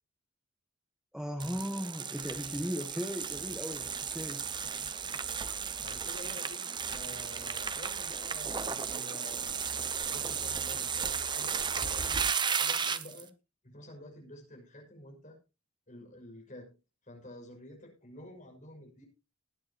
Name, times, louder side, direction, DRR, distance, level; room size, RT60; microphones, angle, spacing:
voice 1, 1.1-4.4, equal, 5° right, 4 dB, 1.1 m, -37 dB
sound 1, 1.4-13.2, right 6 dB, 20° right, 0.6 m, -34 dB
voice 2, 5.8-9.9 10.1-12.3 12.6-13.3 13.6-15.4 15.9-16.8 17.0-19.1, left 1 dB, 35° left, 1 dB, 6.0 m, -49 dB
19.5 x 9.5 x 2.9 m, 0.29 s
head